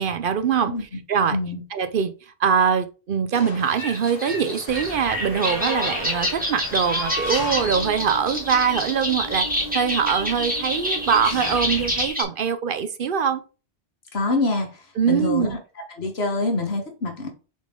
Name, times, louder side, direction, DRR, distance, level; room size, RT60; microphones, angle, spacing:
voice 1, 0.0-1.4 1.7-2.1 2.4-9.5 9.7-13.4 15.0-15.6, right 7 dB, 60° right, 0.8 m, -23 dB
voice 2, 1.3-1.6 14.1-14.7 15.1-15.5 15.9-17.3, left 3 dB, 75° left, 1.7 m, -25 dB
Crushing, 3.3-6.7 7.2-7.3, left 3 dB, 60° left, 1.5 m, -44 dB
sound 1, 3.7-12.2, equal, 10° right, 1.9 m, -27 dB
Engine, 4.7-12.1, left 1 dB, 40° left, 1.2 m, -37 dB
6.2 x 4.2 x 3.7 m
omnidirectional pair, 1.1 m